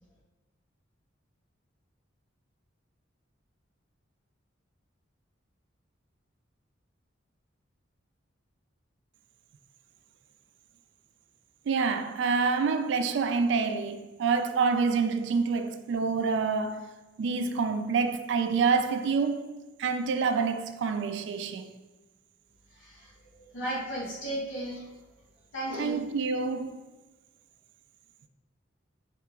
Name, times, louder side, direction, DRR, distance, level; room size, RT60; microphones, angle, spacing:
voice 1, 11.7-16.9 17.2-19.5 19.8-21.7 25.8-26.8, right 5 dB, 65° right, 0.3 m, -27 dB
voice 2, 22.7-23.1 23.4-24.9 25.5-26.0, right 1 dB, 85° left, 1.2 m, -35 dB
5.7 x 2.9 x 2.3 m
head